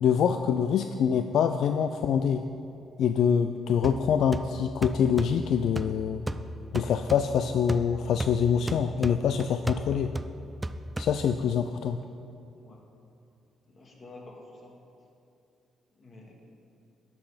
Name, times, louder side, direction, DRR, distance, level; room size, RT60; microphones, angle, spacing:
voice 1, 0.0-2.4 3.0-6.2 6.7-10.1 11.0-12.0, left 7 dB, 70° left, 8 dB, 0.3 m, -25 dB
sound 1, 3.8-11.6, right 1 dB, 10° right, 0.4 m, -36 dB
voice 2, 12.6-12.9 13.6-14.8 15.9-16.3, left 2 dB, 40° left, -1 dB, 2.1 m, -49 dB
11.5 x 6.1 x 5.0 m, 2.6 s
cardioid pair, 90°, 0 cm